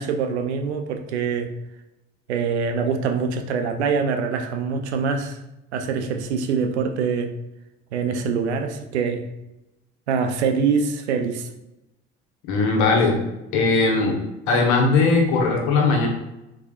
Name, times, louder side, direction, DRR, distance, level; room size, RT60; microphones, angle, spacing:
voice 1, 0.0-1.5 2.3-5.4 5.7-7.3 7.9-9.3 10.1-11.5, right 5 dB, 80° right, 6 dB, 0.5 m, -24 dB
voice 2, 12.5-13.1 13.5-14.2 14.5-16.1, left 3 dB, 60° left, 1 dB, 1.2 m, -19 dB
4.7 x 4.1 x 2.4 m, 0.93 s
hypercardioid pair, 60°, 33 cm